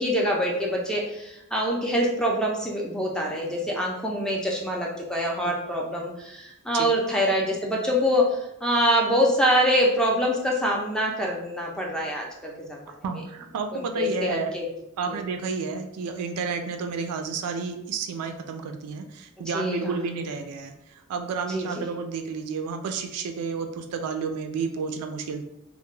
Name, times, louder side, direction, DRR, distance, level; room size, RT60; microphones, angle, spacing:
voice 1, 0.0-12.9 13.7-14.7 15.1-15.2 19.5-20.0 21.5-21.8, equal, 5° left, -2 dB, 0.4 m, -25 dB
voice 2, 13.0-14.5 15.0-25.4, right 5 dB, 75° right, 6 dB, 0.3 m, -31 dB
2.2 x 2.0 x 3.0 m, 0.83 s
head